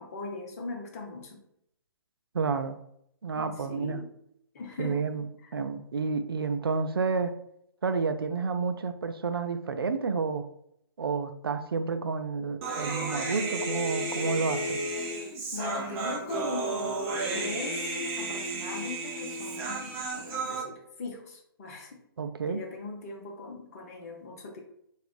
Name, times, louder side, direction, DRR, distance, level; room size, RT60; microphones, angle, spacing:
voice 1, 0.0-1.4 3.3-4.1 4.5-5.1 5.4-5.6 15.5-17.0 17.3-22.0 22.5-24.6, left 3 dB, 40° left, 2 dB, 0.8 m, -40 dB
voice 2, 2.3-2.8 3.2-4.0 4.8-5.3 5.5-7.4 7.8-10.4 11.0-14.8 22.2-22.6, right 5 dB, 70° right, 9 dB, 0.4 m, -30 dB
Human voice, 12.6-20.6, right 2 dB, 15° right, 0.5 m, -32 dB
3.4 x 2.4 x 3.5 m, 0.73 s
figure-of-eight pair, 130°, 13 cm